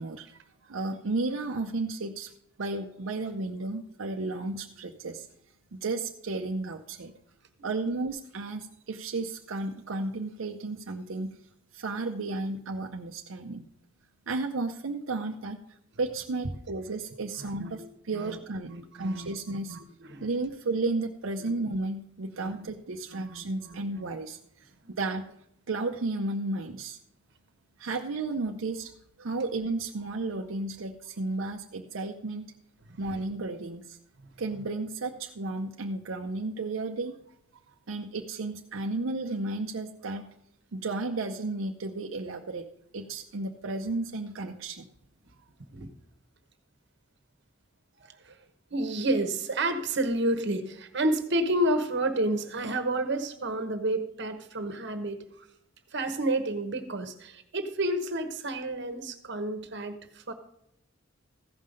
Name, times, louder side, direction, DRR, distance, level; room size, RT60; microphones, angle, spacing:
voice 1, 0.0-2.3 2.6-5.3 5.7-7.1 7.6-11.4 11.7-13.7 14.3-15.6 16.0-19.8 20.2-25.2 25.7-27.0 27.8-28.9 29.2-32.5 33.0-34.0 34.4-37.1 37.9-40.3 40.7-42.7 42.9-44.8, right 3 dB, 90° right, 3 dB, 0.7 m, -33 dB
voice 2, 17.6-17.9 18.1-18.4 18.7-19.8 20.1-20.3 22.4-22.6 23.1-23.8 32.9-33.0 45.7-45.9 48.1-48.4 48.7-55.5 55.9-60.3, right 1 dB, 60° right, 8 dB, 1.1 m, -30 dB
14.5 x 5.7 x 5.1 m, 0.78 s
head